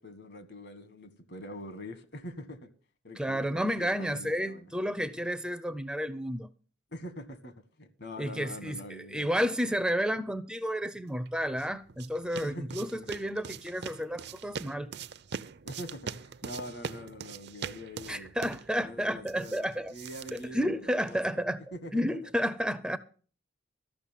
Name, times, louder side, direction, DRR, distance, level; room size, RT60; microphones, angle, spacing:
voice 1, 0.0-2.7 3.0-4.7 6.9-9.3 12.4-13.1 15.6-18.3 18.8-21.4 21.7-22.3, left 1 dB, 60° left, 1.6 m, -44 dB
voice 2, 3.2-6.5 8.2-14.9 18.1-19.9 20.3-21.6 21.9-23.0, equal, 5° right, 0.5 m, -31 dB
sound 1, 11.3-21.3, right 6 dB, 60° right, 0.6 m, -43 dB
13.5 x 6.1 x 9.0 m
head